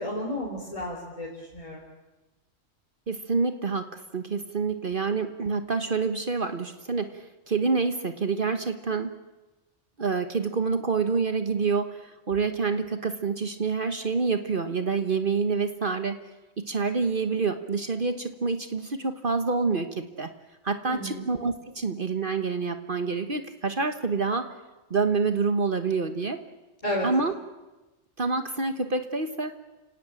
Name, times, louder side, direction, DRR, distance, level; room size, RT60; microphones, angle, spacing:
voice 1, 0.0-1.8 20.9-21.3 26.8-27.1, equal, 30° left, -3 dB, 4.3 m, -32 dB
voice 2, 3.1-9.1 10.0-16.2 16.6-20.3 20.6-24.5 24.9-26.4 27.0-27.3 28.2-29.5, right 4 dB, 45° right, 8 dB, 1.4 m, -27 dB
30.0 x 17.5 x 8.9 m, 1.1 s
omnidirectional pair, 1.2 m